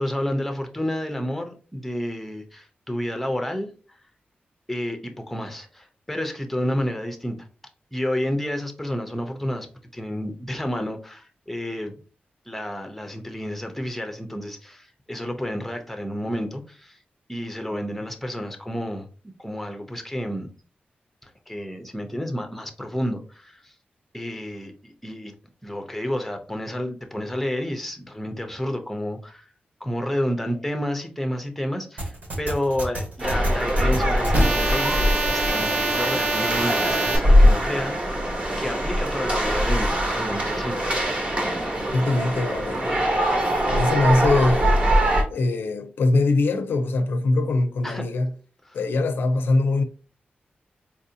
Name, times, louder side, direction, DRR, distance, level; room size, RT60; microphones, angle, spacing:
voice 1, 0.0-3.7 4.7-7.5 7.9-9.7 9.9-11.9 12.5-17.0 17.3-19.1 19.4-20.5 21.2-23.7 24.1-25.3 25.6-29.5 29.8-34.9 35.3-38.2 38.6-40.8 47.8-48.0 48.7-48.8, left 1 dB, 5° left, 0.5 m, -30 dB
sound 1, 32.0-37.2, right 2 dB, 50° right, 1.1 m, -25 dB
sound 2, 33.2-45.2, equal, 30° right, 0.9 m, -22 dB
voice 2, 41.9-43.1 43.7-44.8 45.3-48.3 48.7-49.8, left 2 dB, 90° left, 0.4 m, -22 dB
4.3 x 2.6 x 2.6 m
wide cardioid pair, 145°, 4 cm